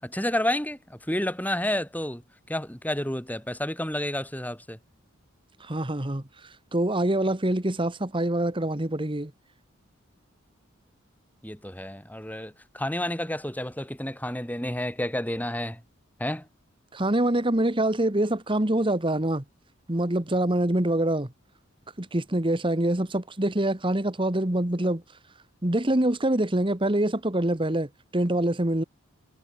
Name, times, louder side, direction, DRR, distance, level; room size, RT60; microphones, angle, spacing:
voice 1, 0.0-2.2 2.5-4.8 11.4-15.8 16.2-16.5, left 1 dB, 10° left, 5.4 m, -30 dB
voice 2, 5.6-6.2 6.7-9.3 16.9-19.4 19.9-21.3 22.0-25.0 25.6-28.8, right 1 dB, 25° right, 1.5 m, -25 dB
head